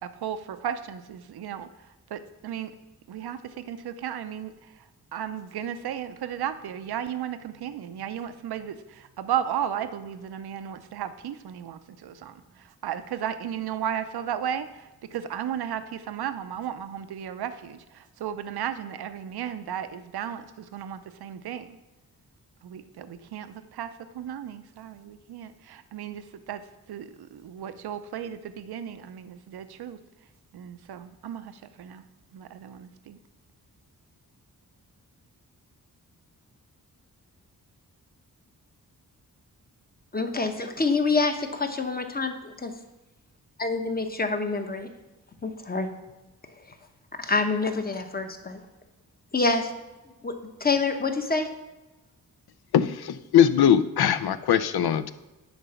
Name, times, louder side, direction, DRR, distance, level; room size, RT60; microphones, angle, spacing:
voice 1, 0.0-2.7 3.1-4.8 5.1-21.8 22.6-26.6 26.9-30.0 30.5-32.0 32.3-33.2, right 9 dB, 80° right, 11 dB, 0.6 m, -35 dB
voice 2, 40.1-42.3 42.6-42.7 43.6-44.9 45.4-45.9 47.2-48.6 49.3-49.7 50.2-50.3 50.6-51.5, left 3 dB, 25° left, 6 dB, 0.9 m, -26 dB
voice 3, 52.7-55.1, left 9 dB, 75° left, 13 dB, 0.5 m, -21 dB
10.0 x 4.0 x 5.6 m, 1.1 s
wide cardioid pair, 85°, 38 cm